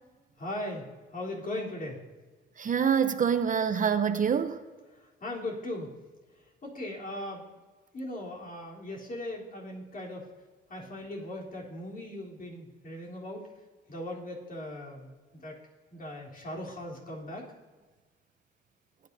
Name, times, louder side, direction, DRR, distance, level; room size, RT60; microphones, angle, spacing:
voice 1, 0.4-2.0 5.0-5.9 6.6-7.4 7.9-10.3 10.7-13.5 13.9-15.6 15.9-17.5, left 1 dB, 45° left, -3 dB, 3.5 m, -38 dB
voice 2, 2.6-4.6, right 7 dB, 40° right, 9 dB, 0.7 m, -26 dB
18.5 x 9.6 x 2.7 m, 1.3 s
cardioid pair, 90°, 20 cm